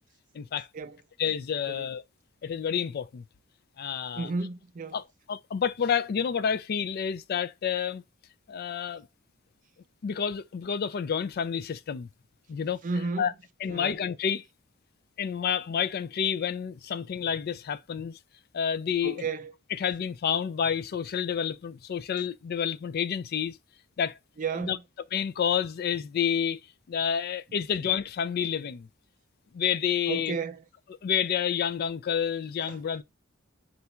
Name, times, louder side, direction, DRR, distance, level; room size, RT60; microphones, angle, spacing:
voice 1, 0.3-0.7 1.2-2.0 2.4-3.3 3.8-4.3 4.9-8.0 8.5-9.1 10.0-12.1 12.5-12.8 13.2-13.3 13.6-14.4 15.2-18.2 18.5-19.2 19.7-23.6 24.0-24.2 24.6-24.8 25.1-26.6 26.9-28.9 29.5-30.4 31.0-33.0, left 8 dB, 50° left, 0.3 m, -29 dB
voice 2, 4.2-5.0 12.8-13.3 13.7-13.9 19.0-19.5 24.4-24.8 30.1-30.6 32.6-32.8, right 4 dB, 40° right, 0.4 m, -33 dB
3.9 x 2.3 x 4.3 m
head